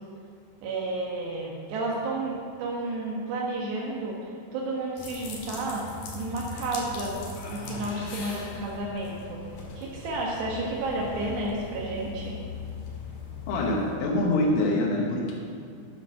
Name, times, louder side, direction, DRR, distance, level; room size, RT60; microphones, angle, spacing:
voice 1, 0.6-5.9 6.2-7.2 7.5-9.4 9.8-12.4, right 2 dB, 70° right, -2 dB, 3.3 m, -31 dB
sound 1, 5.0-14.0, left 4 dB, 55° left, 2.7 m, -39 dB
voice 2, 13.5-15.4, left 1 dB, 90° left, -2 dB, 3.9 m, -25 dB
10.5 x 9.5 x 6.2 m, 2.3 s
omnidirectional pair, 5.5 m